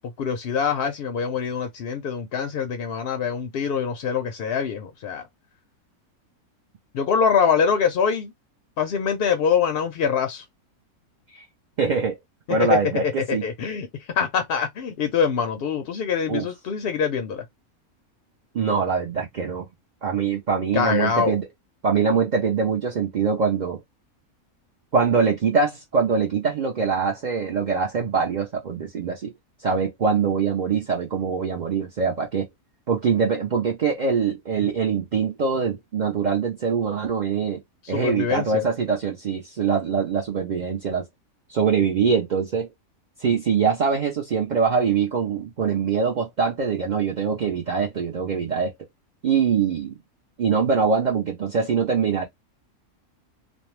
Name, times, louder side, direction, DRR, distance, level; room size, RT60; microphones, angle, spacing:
voice 1, 0.2-5.3 6.9-8.3 8.8-10.4 12.5-17.4 20.7-21.4 37.8-38.7, left 6 dB, 65° left, 0.6 m, -24 dB
voice 2, 11.8-12.2 12.5-13.4 16.3-16.5 18.5-19.7 20.0-21.4 21.8-23.8 24.9-29.3 29.6-32.5 32.9-37.6 37.9-41.0 41.5-42.7 43.2-48.7 49.2-50.0 50.4-52.3, right 6 dB, 60° right, 0.4 m, -23 dB
2.6 x 2.1 x 3.0 m
omnidirectional pair, 1.5 m